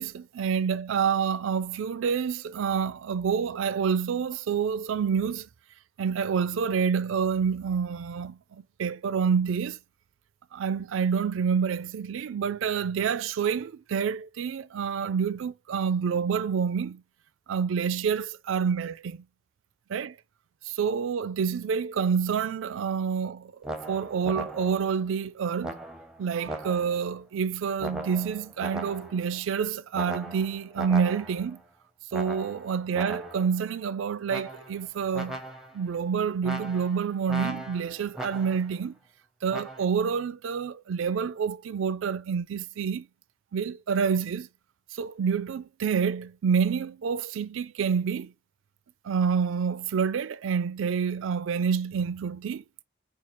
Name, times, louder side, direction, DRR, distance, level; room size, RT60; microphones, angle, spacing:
voice 1, 0.0-5.5 6.0-9.8 10.5-17.0 17.5-19.2 19.9-20.2 20.7-23.5 23.9-25.8 26.2-31.6 32.1-35.4 35.7-38.9 39.4-43.1 43.5-44.5 44.9-48.3 49.0-52.6, right 6 dB, 80° right, 0.4 m, -28 dB
sound 1, 23.6-24.9 25.6-27.1 27.8-29.3 29.9-31.5 32.1-33.5 34.3-34.9 35.1-35.9 36.4-38.7 39.5-39.8, right 1 dB, ahead, 0.6 m, -38 dB
5.7 x 2.3 x 3.0 m
head